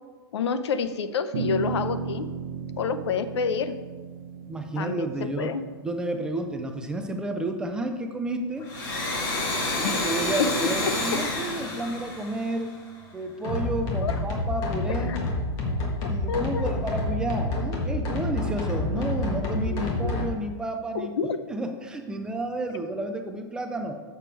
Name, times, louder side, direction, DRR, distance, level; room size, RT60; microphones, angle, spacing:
voice 1, 0.3-2.3 2.8-3.8 4.8-5.1 5.4-5.6 9.8-10.1 10.4-10.5 14.0-14.2 15.1-15.2 16.3-16.7 19.7-19.9 20.9-21.4, left 6 dB, 80° left, 11 dB, 0.7 m, -28 dB
sound 1, 1.3-7.9, right 5 dB, 55° right, 0.8 m, -35 dB
voice 2, 4.4-5.6 5.8-8.7 9.8-12.8 13.1-15.2 16.1-21.1 21.5-24.0, right 2 dB, 5° right, 5 dB, 0.3 m, -31 dB
Domestic sounds home sounds, 8.6-13.1, left 2 dB, 45° left, 2.7 m, -29 dB
sound 2, 13.4-20.3, left 2 dB, 25° left, 1.5 m, -28 dB
7.3 x 6.8 x 4.5 m, 1.3 s
supercardioid pair, 165°, 14 cm